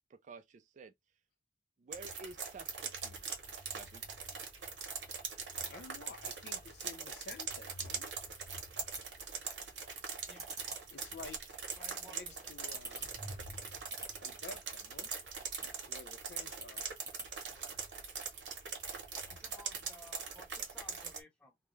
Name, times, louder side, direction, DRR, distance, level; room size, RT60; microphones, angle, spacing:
voice 1, 0.1-0.9 1.8-3.2 3.7-4.0, right 4 dB, 40° right, 0.3 m, -51 dB
sound 1, 1.9-21.2, right 5 dB, 65° right, 0.9 m, -42 dB
voice 2, 5.6-8.1 10.9-11.4 12.1-13.1 14.2-15.1 15.6-16.8, left 4 dB, 65° left, 0.5 m, -51 dB
sound 2, 6.7-19.5, right 2 dB, 20° right, 0.9 m, -53 dB
voice 3, 10.3-10.6 11.8-12.5 19.3-21.6, left 2 dB, 5° left, 0.9 m, -57 dB
2.3 x 2.0 x 3.1 m
head